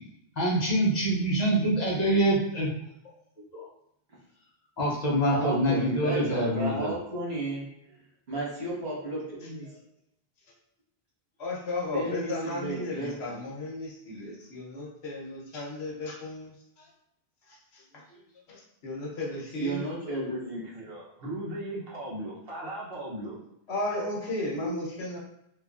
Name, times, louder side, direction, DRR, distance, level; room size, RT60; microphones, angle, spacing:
voice 1, 0.4-2.7 3.5-3.6 4.8-6.9, right 1 dB, 50° left, -5 dB, 0.7 m, -25 dB
voice 2, 5.2-7.7 8.3-9.7 11.9-13.4 19.6-20.6 24.6-24.7, right 2 dB, 80° right, -6 dB, 1.3 m, -33 dB
voice 3, 11.4-16.9 17.5-18.2 18.5-19.8 23.7-25.2, left 2 dB, 85° left, -3 dB, 1.1 m, -35 dB
voice 4, 20.0-23.3, right 1 dB, 65° right, -4 dB, 1.0 m, -38 dB
3.0 x 2.4 x 2.3 m, 0.79 s
omnidirectional pair, 1.1 m